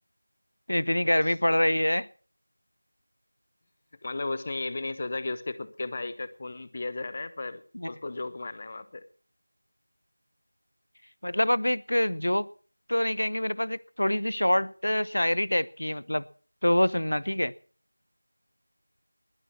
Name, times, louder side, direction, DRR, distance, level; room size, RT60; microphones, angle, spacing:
voice 1, 0.7-2.1 7.7-7.9 11.2-12.5 12.9-16.2 16.6-17.5, left 1 dB, 85° left, 21 dB, 0.8 m, -25 dB
voice 2, 1.2-1.6 4.0-7.6 7.9-9.0, left 3 dB, 15° left, 15 dB, 0.7 m, -35 dB
20.5 x 10.5 x 5.8 m, 0.42 s
figure-of-eight pair, 180°, 0 cm